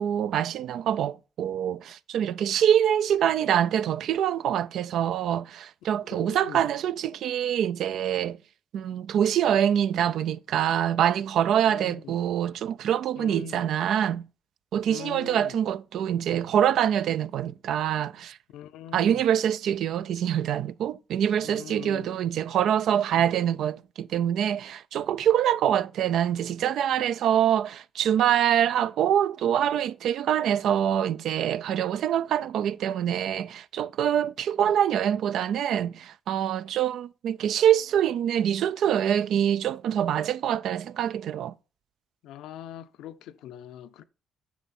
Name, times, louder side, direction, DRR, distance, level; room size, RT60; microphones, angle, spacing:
voice 1, 0.0-8.4 8.7-14.2 14.7-18.4 18.9-41.5, right 9 dB, 75° right, 0.4 m, -25 dB
voice 2, 6.1-6.7 11.6-12.2 13.1-13.7 14.9-15.6 18.5-19.3 21.4-22.2 42.2-44.0, left 10 dB, 90° left, 0.6 m, -42 dB
10.0 x 6.2 x 4.2 m
cardioid pair, 90°, 0 cm